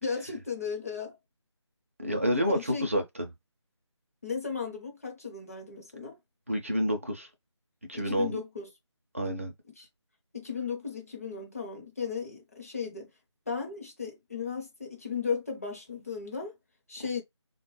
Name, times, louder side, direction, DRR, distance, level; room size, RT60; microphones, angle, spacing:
voice 1, 0.0-1.2 2.2-2.9 4.2-6.2 7.9-8.7 9.8-9.9 10.3-13.1 13.5-16.5 16.9-17.2, left 5 dB, 30° left, 0.7 m, -35 dB
voice 2, 2.0-3.3 6.5-7.3 7.9-8.4 9.1-9.5, equal, 30° right, 0.5 m, -29 dB
3.5 x 2.2 x 3.0 m
figure-of-eight pair, 160°, 15 cm